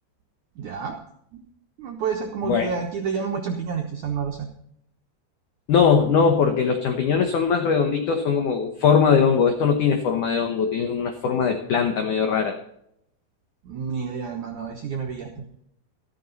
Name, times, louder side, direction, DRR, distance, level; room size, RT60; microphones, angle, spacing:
voice 1, 0.6-1.0 1.3-1.4 1.8-4.5 13.7-15.3, right 6 dB, 80° right, 2 dB, 1.7 m, -29 dB
voice 2, 2.4-2.8 5.7-12.5, left 6 dB, 85° left, 5 dB, 1.7 m, -21 dB
13.5 x 13.0 x 4.0 m, 0.73 s
omnidirectional pair, 5.2 m